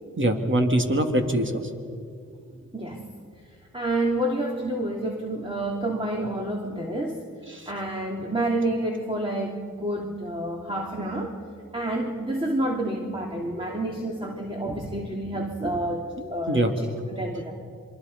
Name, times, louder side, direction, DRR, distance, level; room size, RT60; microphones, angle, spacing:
voice 1, 0.2-1.6 7.5-7.7 16.2-16.7, right 1 dB, 40° right, 4 dB, 3.0 m, -23 dB
voice 2, 3.7-7.2 7.7-11.4 11.7-17.5, right 1 dB, 15° right, -1 dB, 3.0 m, -29 dB
27.5 x 23.5 x 5.5 m, 2.3 s
cardioid pair, 55°, 32 cm